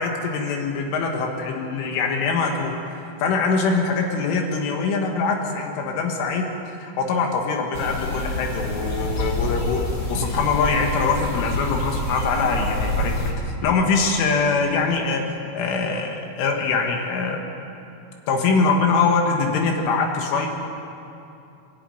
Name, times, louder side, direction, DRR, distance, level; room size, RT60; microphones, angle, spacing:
voice 1, 0.0-2.7 3.2-6.4 6.8-9.8 10.1-13.3 13.6-15.2 15.5-17.5 18.3-20.5, left 4 dB, 80° left, 2 dB, 4.1 m, -23 dB
sound 1, 7.7-13.3, left 1 dB, 50° left, 1.2 m, -27 dB
26.5 x 11.5 x 9.2 m, 2.7 s
omnidirectional pair, 5.6 m